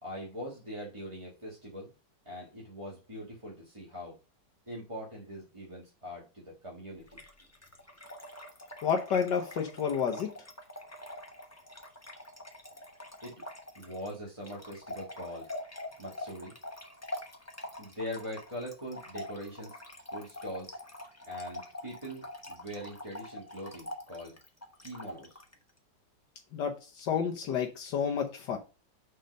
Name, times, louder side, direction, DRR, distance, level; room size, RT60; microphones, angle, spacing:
voice 1, 0.0-1.9 2.2-4.2 4.7-7.2 13.2-13.3 13.7-15.5 16.0-16.5 17.8-19.8 20.1-20.8 21.2-24.4 24.8-25.4, equal, 15° right, 1.7 m, -42 dB
Trickle dribble / Fill (with liquid), 7.1-25.5, left 1 dB, 10° left, 0.8 m, -45 dB
voice 2, 8.8-10.3 26.5-28.6, left 7 dB, 70° left, 1.5 m, -30 dB
6.4 x 4.4 x 5.2 m
omnidirectional pair, 2.0 m